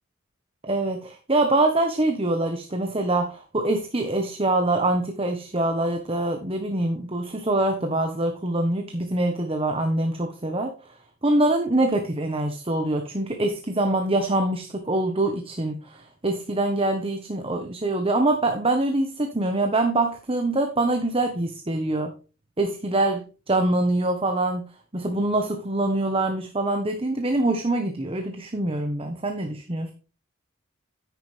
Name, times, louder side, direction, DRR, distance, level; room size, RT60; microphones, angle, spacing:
voice 1, 0.6-10.7 11.2-22.1 22.6-24.6 24.9-29.9, right 2 dB, 25° right, 5 dB, 1.2 m, -24 dB
9.8 x 9.8 x 3.4 m, 0.34 s
head